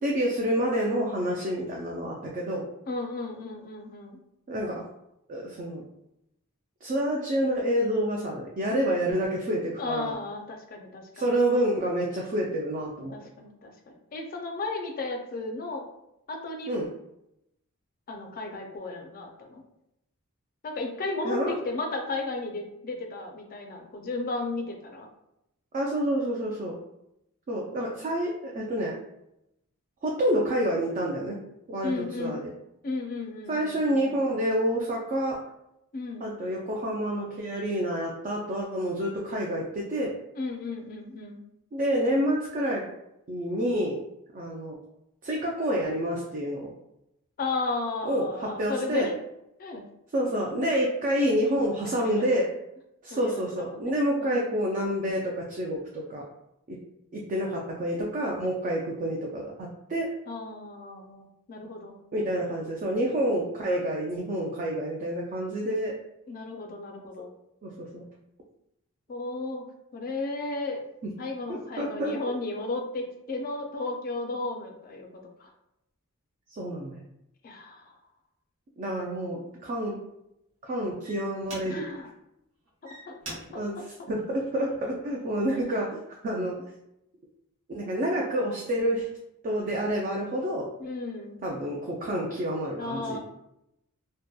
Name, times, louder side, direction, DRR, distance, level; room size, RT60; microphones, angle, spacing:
voice 1, 0.0-2.7 4.5-4.8 5.3-5.8 6.8-10.1 11.1-13.1 16.7-16.9 21.2-21.5 25.7-26.7 27.5-29.0 30.0-31.4 31.7-31.9 32.2-32.5 33.5-35.4 36.2-40.1 41.7-42.8 43.3-44.0 44.3-44.8 45.2-46.7 48.0-49.1 50.1-52.5 53.0-56.2 56.7-56.8 57.1-60.1 62.1-65.9 67.6-68.0 71.8-72.1 76.5-77.0 78.8-80.0 80.6-81.8 83.5-83.7 84.1-86.6 87.7-89.1 89.4-90.7 91.4-93.2, equal, 35° right, -2 dB, 0.3 m, -28 dB
voice 2, 2.9-4.2 9.8-11.3 13.1-15.9 16.3-16.8 18.1-19.6 20.6-25.1 31.8-32.4 32.8-34.2 35.9-36.3 40.4-41.4 47.4-49.1 49.6-49.8 50.6-50.7 51.8-52.3 53.1-53.9 54.2-54.6 60.3-61.9 66.3-67.3 69.1-69.7 69.9-70.8 71.2-75.1 75.4-75.5 77.4-77.9 81.6-82.1 83.1-83.2 83.5-83.6 90.8-91.4 92.8-93.2, left 3 dB, 40° left, 3 dB, 0.4 m, -34 dB
sound 1, 79.6-79.9 80.6-80.7 81.0-82.1 82.6-85.0 85.6-85.9, right 1 dB, 75° right, 0.9 m, -45 dB
2.7 x 2.1 x 2.2 m, 0.82 s
head